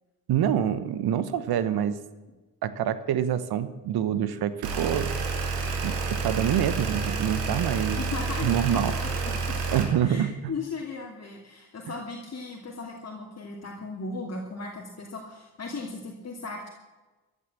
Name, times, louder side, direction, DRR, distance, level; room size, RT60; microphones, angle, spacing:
voice 1, 0.3-2.0 2.6-5.1 5.8-6.0 6.2-8.0 8.4-9.0 9.7-10.3, right 10 dB, 60° right, 14 dB, 1.2 m, -26 dB
sound 1, 4.6-9.8, right 4 dB, 80° right, 2.6 m, -29 dB
voice 2, 8.0-16.7, left 3 dB, 35° left, 0 dB, 2.7 m, -37 dB
15.0 x 11.0 x 7.4 m, 1.2 s
hypercardioid pair, 50°, 43 cm